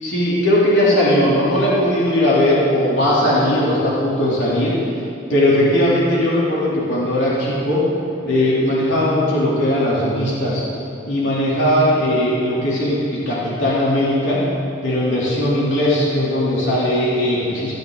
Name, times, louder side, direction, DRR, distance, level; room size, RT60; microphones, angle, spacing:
voice 1, 0.0-4.7 5.3-7.9 8.2-10.6 11.0-14.4 14.8-17.7, left 1 dB, 75° left, -8 dB, 3.6 m, -18 dB
18.5 x 12.5 x 4.1 m, 2.7 s
head